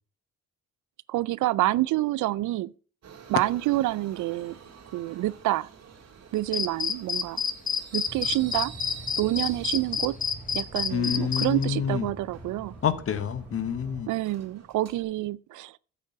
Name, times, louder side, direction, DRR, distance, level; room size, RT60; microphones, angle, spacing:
voice 1, 1.1-2.7 3.3-4.6 4.9-5.7 6.3-7.4 7.9-8.7 9.2-10.2 10.5-12.7 14.1-15.8, right 16 dB, 80° right, 0.5 m, -27 dB
Subway metro underground, 3.0-15.0, right 6 dB, 60° right, 2.3 m, -50 dB
sound 1, 6.5-11.7, left 6 dB, 25° left, 0.9 m, -28 dB
sound 2, 8.1-14.0, right 1 dB, 5° right, 2.8 m, -45 dB
voice 2, 10.9-12.1 12.8-14.1, left 7 dB, 50° left, 1.2 m, -28 dB
9.8 x 7.7 x 5.7 m
cardioid pair, 90°, 30 cm